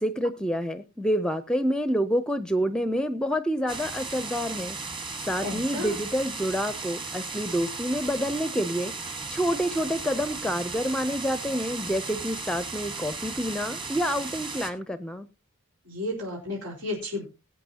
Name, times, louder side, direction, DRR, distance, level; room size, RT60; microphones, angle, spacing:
voice 1, 0.0-4.8 5.2-8.9 9.3-15.3, equal, 5° left, 12 dB, 0.5 m, -28 dB
sound 1, 3.7-14.7, right 4 dB, 20° right, 1.3 m, -36 dB
voice 2, 5.4-6.0 15.8-17.2, left 1 dB, 90° right, -2 dB, 4.6 m, -32 dB
19.5 x 8.8 x 2.8 m, 0.28 s
head